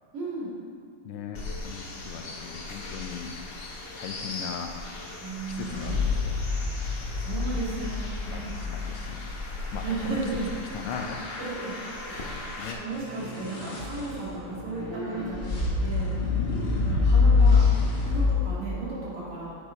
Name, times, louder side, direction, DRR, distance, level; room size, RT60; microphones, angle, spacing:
voice 1, 0.1-0.5 5.2-5.8 7.2-8.5 9.8-10.5 11.4-11.8 12.0-16.2 16.8-17.7 18.0-19.5, right 3 dB, 90° right, -7 dB, 3.2 m, -35 dB
voice 2, 1.0-3.3 4.0-4.8 5.5-6.4 8.3-9.2 9.7-10.2 10.7-11.3 12.6-12.8, left 7 dB, 85° left, 4 dB, 1.5 m, -38 dB
sound 1, 1.3-12.7, left 2 dB, 60° left, 0.6 m, -39 dB
sound 2, 5.6-9.7 13.0-18.3, left 4 dB, 30° left, 1.5 m, -25 dB
7.2 x 6.3 x 5.0 m, 2.4 s
omnidirectional pair, 2.4 m